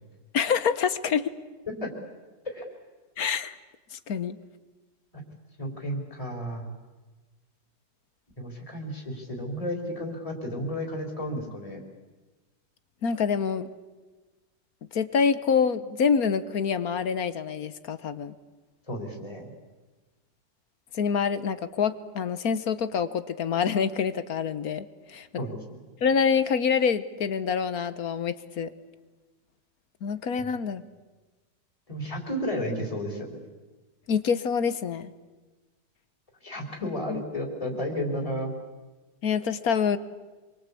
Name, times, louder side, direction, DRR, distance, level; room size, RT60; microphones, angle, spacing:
voice 1, 0.3-1.3 3.2-3.6 3.9-4.4 13.0-13.7 14.9-18.3 20.9-25.3 26.0-28.7 30.0-30.8 34.1-35.1 36.8-37.2 39.2-40.0, left 6 dB, 55° left, 13 dB, 1.4 m, -26 dB
voice 2, 5.6-6.7 8.4-11.8 18.9-19.5 25.4-25.8 30.4-30.5 31.9-33.4 36.4-38.5, equal, 15° left, 2 dB, 4.2 m, -33 dB
27.0 x 24.0 x 8.5 m, 1.2 s
omnidirectional pair, 2.0 m